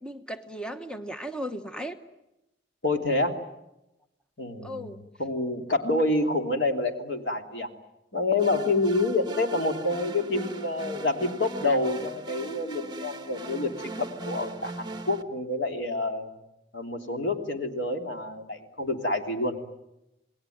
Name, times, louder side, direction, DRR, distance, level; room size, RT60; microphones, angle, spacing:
voice 1, 0.0-2.0 4.6-5.0, equal, 5° left, 7 dB, 1.1 m, -36 dB
voice 2, 2.8-3.4 4.4-7.7 8.1-16.3 16.7-19.6, left 2 dB, 85° left, 4 dB, 3.1 m, -28 dB
sound 1, 8.4-15.2, right 2 dB, 25° right, 1.2 m, -39 dB
28.5 x 20.5 x 9.4 m, 0.92 s
head